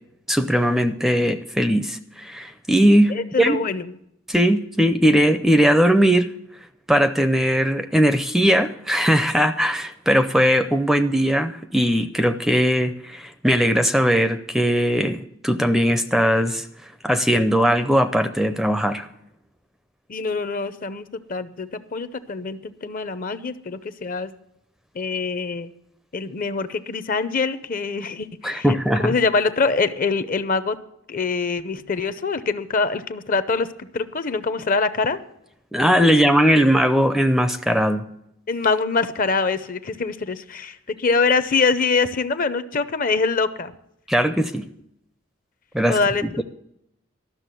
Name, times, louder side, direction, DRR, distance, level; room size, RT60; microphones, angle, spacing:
voice 1, 0.3-3.1 3.4-3.6 4.3-6.3 6.9-16.7 17.0-19.1 28.4-29.1 35.7-38.0 44.1-44.6 45.7-46.4, equal, ahead, 10 dB, 0.5 m, -19 dB
voice 2, 3.1-4.0 20.1-24.3 24.9-25.7 26.1-28.7 29.0-30.8 31.1-35.2 36.0-36.1 38.5-43.7 45.9-46.4, left 4 dB, 45° left, 13 dB, 0.6 m, -24 dB
13.0 x 6.4 x 9.0 m, 0.78 s
head